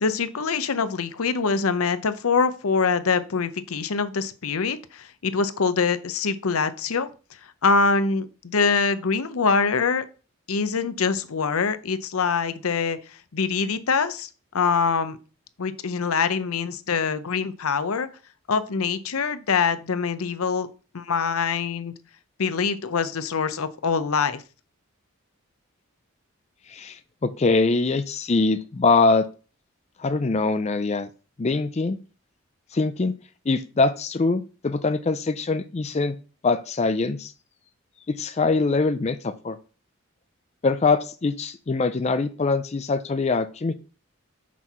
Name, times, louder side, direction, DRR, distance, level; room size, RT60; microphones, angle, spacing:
voice 1, 0.0-7.1 7.6-10.1 10.5-13.0 13.3-14.3 14.5-15.2 15.6-18.1 18.5-20.7 20.9-21.9 22.4-24.4, left 5 dB, 85° left, 13 dB, 0.7 m, -24 dB
voice 2, 26.7-29.2 30.0-31.1 31.4-32.0 32.7-33.1 33.5-36.1 36.4-37.3 38.1-39.6 40.6-43.7, left 3 dB, 30° left, 10 dB, 0.4 m, -23 dB
6.1 x 4.5 x 5.5 m, 0.35 s
head